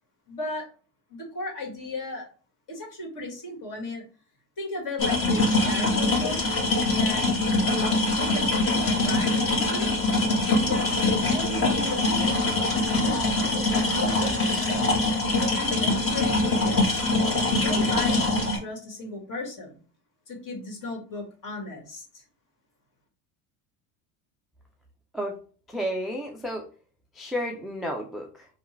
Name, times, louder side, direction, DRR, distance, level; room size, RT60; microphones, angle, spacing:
voice 1, 0.3-0.7 1.1-2.3 2.7-4.0 4.6-6.4 6.9-9.9 10.5-11.0 11.3-12.3 13.1-14.9 15.5-17.0 17.5-19.8 20.3-22.2, left 2 dB, 45° left, 0 dB, 1.9 m, -35 dB
sound 1, 5.0-18.6, left 2 dB, 30° left, 1.4 m, -23 dB
voice 2, 25.7-26.7 27.1-28.5, equal, ahead, 1 dB, 0.3 m, -32 dB
3.4 x 2.4 x 4.4 m, 0.40 s
supercardioid pair, 105°, 44 cm